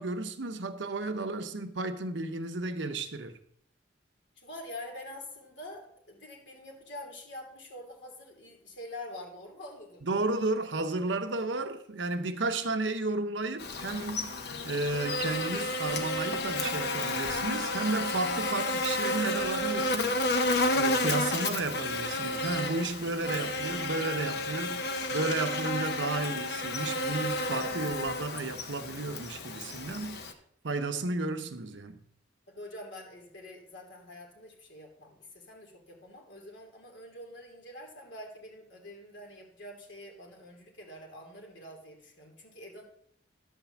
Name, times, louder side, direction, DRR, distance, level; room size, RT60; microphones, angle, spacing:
voice 1, 0.0-3.4 10.0-20.2 20.7-30.2 30.6-32.0, right 3 dB, 80° right, 0.9 m, -33 dB
voice 2, 4.4-10.0 32.5-42.8, left 1 dB, 75° left, 3.0 m, -46 dB
Buzz, 13.6-30.3, left 2 dB, 60° left, 1.0 m, -31 dB
11.0 x 4.6 x 7.1 m
head